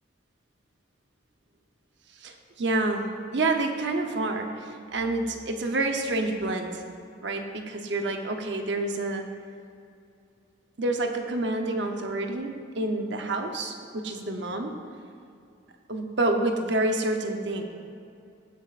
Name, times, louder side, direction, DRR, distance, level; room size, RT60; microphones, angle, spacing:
voice 1, 2.2-6.8 7.2-9.3 10.8-14.7 15.9-17.6, right 2 dB, 75° right, 4 dB, 0.9 m, -28 dB
16.5 x 7.3 x 2.5 m, 2.5 s
head